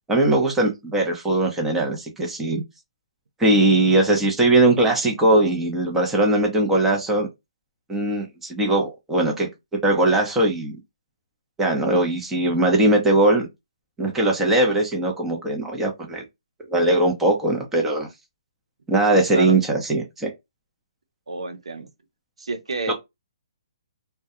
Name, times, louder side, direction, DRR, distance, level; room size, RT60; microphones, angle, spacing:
voice 1, 0.1-2.6 3.4-7.3 7.9-9.5 9.8-10.8 11.6-13.5 14.0-16.2 16.7-18.1 18.9-20.3 22.9-23.0, right 1 dB, 10° right, 0.7 m, -20 dB
voice 2, 21.3-21.9 22.4-22.9, right 3 dB, 85° right, 0.5 m, -30 dB
2.2 x 2.2 x 2.7 m
hypercardioid pair, 150°, 3 cm